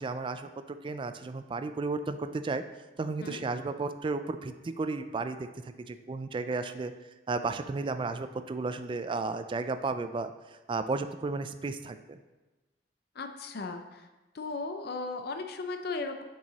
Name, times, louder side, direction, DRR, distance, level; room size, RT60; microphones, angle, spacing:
voice 1, 0.0-2.6 3.0-6.9 7.3-10.3 10.7-12.2, right 3 dB, 30° right, 10 dB, 0.3 m, -33 dB
voice 2, 13.2-14.1 14.3-16.2, left 3 dB, 60° left, 6 dB, 0.5 m, -36 dB
7.1 x 4.7 x 4.0 m, 1.1 s
head